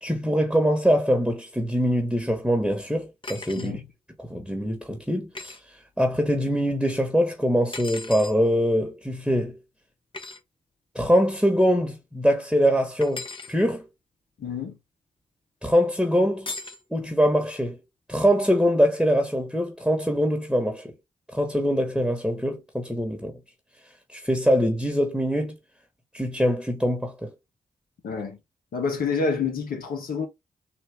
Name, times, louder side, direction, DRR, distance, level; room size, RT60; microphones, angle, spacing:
voice 1, 0.0-3.7 4.2-5.6 6.0-9.6 10.9-13.8 15.6-16.5 16.9-17.8 18.1-20.9 21.3-23.4 24.1-25.6 26.1-27.3, equal, 5° right, 1.2 m, -23 dB
sound 1, 3.2-3.7 5.3-5.6 7.7-8.4 10.1-10.4 13.0-13.5 16.5-16.8, left 3 dB, 35° left, 0.9 m, -37 dB
voice 2, 3.5-3.9 14.4-14.8 28.0-28.4 28.7-30.3, left 5 dB, 90° left, 1.2 m, -28 dB
4.1 x 2.7 x 3.4 m
cardioid pair, 45°, 14 cm